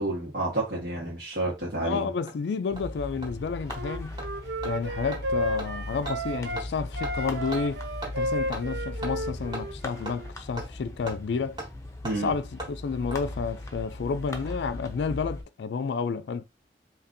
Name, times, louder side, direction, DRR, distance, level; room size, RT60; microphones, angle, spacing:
voice 1, 0.0-2.1 12.0-12.3, right 2 dB, 65° right, 1.4 m, -30 dB
Hammer, 1.3-1.4 1.8-1.9 2.3-2.4 2.8-2.9 3.2-3.3 3.7-3.8 4.2-4.3 4.6-4.7 5.1-5.2 5.6-5.7 6.1-6.2 6.6-6.7 7.0-7.1 7.5-7.6 8.0-8.1 8.5-8.6 9.0-9.1 9.5-9.6 10.1-10.2 10.6-10.7 11.1-11.2 11.6-11.7 12.1-12.2 12.6-12.7 13.1-13.2 14.1-14.5 14.8-14.9, right 1 dB, 25° right, 1.3 m, -37 dB
voice 2, 1.8-4.2 4.6-7.8 8.2-11.6 12.1-16.4, left 5 dB, 80° left, 0.3 m, -31 dB
sound 1, 2.7-15.4, left 1 dB, 15° left, 0.6 m, -39 dB
Wind instrument woodwind instrument, 3.7-6.6 6.9-10.3, right 1 dB, 80° right, 0.6 m, -33 dB
4.2 x 3.0 x 2.6 m
head